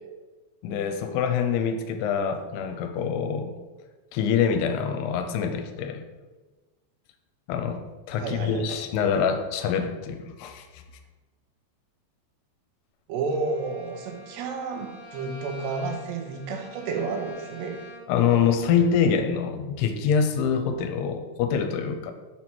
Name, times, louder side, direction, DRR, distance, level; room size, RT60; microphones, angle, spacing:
voice 1, 0.6-3.5 4.1-6.0 7.5-10.8 18.1-22.1, left 7 dB, 80° left, 7 dB, 2.6 m, -25 dB
voice 2, 8.2-8.8 13.1-17.8, right 4 dB, 85° right, 4 dB, 3.1 m, -31 dB
Bowed string instrument, 13.3-18.3, left 2 dB, 20° left, 1.2 m, -46 dB
7.0 x 4.3 x 6.1 m, 1.2 s
omnidirectional pair, 4.8 m